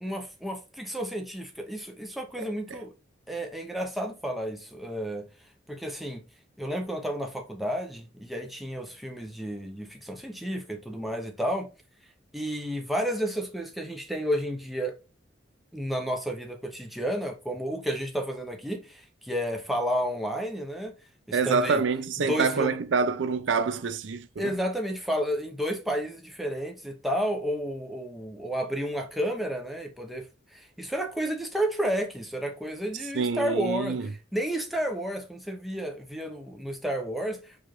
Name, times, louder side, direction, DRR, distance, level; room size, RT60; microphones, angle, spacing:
voice 1, 0.0-2.9 3.3-5.3 5.7-6.2 6.6-11.7 12.3-15.0 15.7-20.9 21.3-21.8 22.3-22.7 24.4-37.6, equal, ahead, 0.6 m, -31 dB
voice 2, 21.3-24.5 33.1-34.1, right 5 dB, 85° right, 0.4 m, -26 dB
4.8 x 2.5 x 2.9 m
head